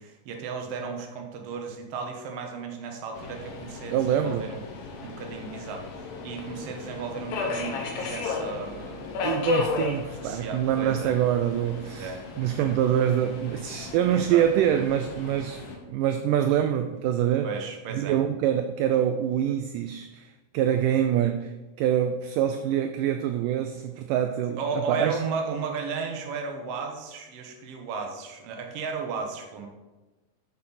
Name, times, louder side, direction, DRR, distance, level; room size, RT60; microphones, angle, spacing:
voice 1, 0.0-4.6 5.0-9.2 10.2-11.1 11.8-12.7 14.1-14.5 17.4-18.2 24.6-29.7, right 5 dB, 60° right, 1.7 m, -35 dB
Subway metro underground, 3.1-15.8, left 5 dB, 85° left, 3.1 m, -35 dB
voice 2, 3.9-4.5 9.2-17.5 17.9-25.2, right 10 dB, 80° right, 2.0 m, -25 dB
11.5 x 6.5 x 4.1 m
omnidirectional pair, 4.2 m